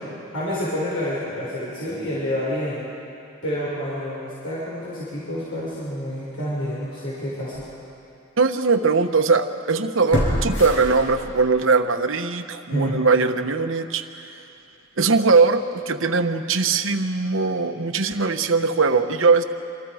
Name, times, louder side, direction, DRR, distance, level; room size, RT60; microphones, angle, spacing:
voice 1, 0.3-2.8 3.4-7.7 12.7-13.0, equal, 90° left, -8 dB, 5.8 m, -28 dB
sound 1, 6.8-7.0 7.5-7.6 10.1-11.6 11.9-12.0, equal, 65° left, 6.6 m, -25 dB
voice 2, 8.4-14.0 15.0-19.4, right 4 dB, 65° right, 8 dB, 1.1 m, -20 dB
26.5 x 26.5 x 5.0 m, 2.7 s
head